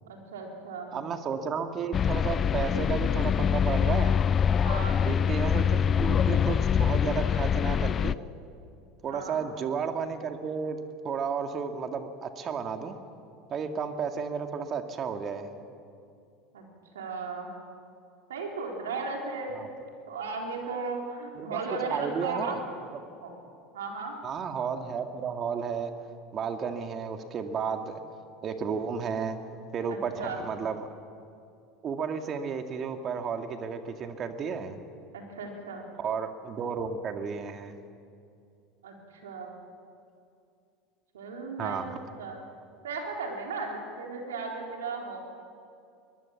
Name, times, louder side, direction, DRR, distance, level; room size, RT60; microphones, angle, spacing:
voice 1, 0.1-1.0 4.6-5.0 9.1-9.4 16.5-16.6 16.9-17.5 18.3-19.5 20.1-22.6 23.2-23.3 23.7-24.1 29.9-30.4 35.1-35.8 38.8-39.5 41.1-42.4 42.8-45.2, right 4 dB, 85° right, 1 dB, 3.9 m, -36 dB
voice 2, 0.9-4.2 5.1-8.2 9.0-10.8 11.0-13.0 13.5-15.5 19.5-19.7 21.4-22.6 24.2-26.0 26.3-28.0 28.4-29.4 29.7-30.9 31.8-34.8 36.0-37.7 41.6-41.9, right 6 dB, 40° right, 6 dB, 2.0 m, -33 dB
sound 1, 1.9-8.1, left 8 dB, 35° left, 0.4 m, -24 dB
22.5 x 19.0 x 7.3 m, 2.5 s
hypercardioid pair, 80°, 0 cm